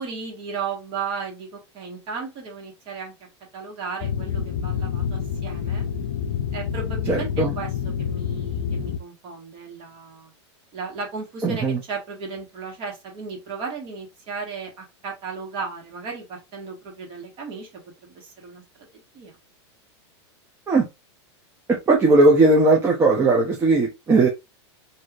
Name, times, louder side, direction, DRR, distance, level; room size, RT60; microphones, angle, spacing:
voice 1, 0.0-3.1 3.5-5.9 6.5-10.3 10.7-18.6 18.9-19.4, right 5 dB, 35° right, 0 dB, 1.4 m, -35 dB
sound 1, 4.0-9.0, left 7 dB, 65° left, 0.4 m, -27 dB
voice 2, 7.1-7.5 11.4-11.8 20.7-20.8 21.7-24.3, right 2 dB, 15° right, -1 dB, 0.5 m, -18 dB
3.1 x 2.7 x 2.5 m, 0.24 s
supercardioid pair, 145°, 15 cm